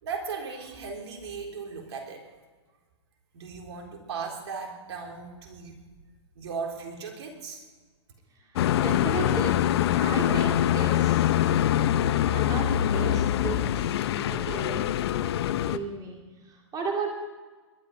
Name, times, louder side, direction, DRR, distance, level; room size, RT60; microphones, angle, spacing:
voice 1, 0.0-2.2 3.3-5.8 6.4-7.6, right 5 dB, 65° right, 2 dB, 3.8 m, -37 dB
voice 2, 8.4-9.6 10.0-11.3 12.3-15.0 15.6-17.1, right 3 dB, 25° right, 1 dB, 2.4 m, -35 dB
sound 1, 8.6-15.8, left 11 dB, 60° left, 0.8 m, -24 dB
21.5 x 12.0 x 5.4 m, 1.4 s
hypercardioid pair, 115°, 15 cm